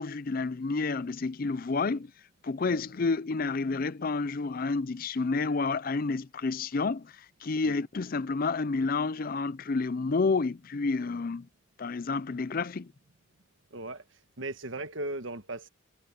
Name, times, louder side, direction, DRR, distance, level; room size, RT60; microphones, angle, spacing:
voice 1, 0.0-2.1 2.4-7.1 7.4-11.5 11.8-12.9, left 4 dB, 45° left, 0.5 m, -30 dB
voice 2, 13.7-15.7, right 2 dB, 70° right, 1.4 m, -38 dB
head